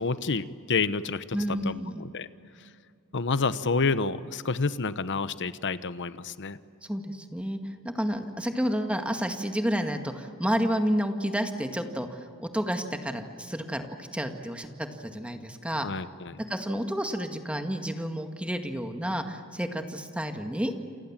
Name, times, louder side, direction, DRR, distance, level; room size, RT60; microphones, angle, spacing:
voice 1, 0.0-1.2 1.6-1.7 2.0-2.3 3.1-6.6 15.8-16.4, left 4 dB, 55° left, 14 dB, 1.0 m, -28 dB
voice 2, 1.3-2.0 6.8-15.9 16.5-20.7, equal, 5° right, 5 dB, 1.8 m, -30 dB
28.5 x 27.5 x 7.4 m, 2.4 s
head